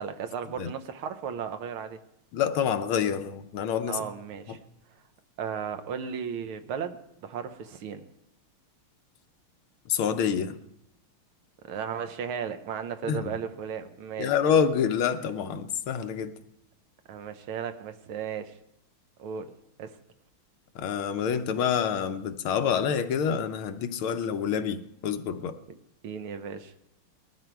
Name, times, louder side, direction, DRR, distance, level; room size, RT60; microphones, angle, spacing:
voice 1, 0.0-2.0 3.9-4.6 5.4-8.1 11.6-14.3 17.1-18.6 19.2-19.5 19.8-20.0 25.7-25.8 26.0-26.7, right 7 dB, 80° right, 9 dB, 1.8 m, -35 dB
voice 2, 2.3-4.0 4.5-4.6 9.9-10.6 13.1-13.4 14.2-16.3 20.7-25.6, left 7 dB, 80° left, 8 dB, 1.7 m, -27 dB
20.0 x 13.0 x 4.6 m, 0.80 s
omnidirectional pair, 2.3 m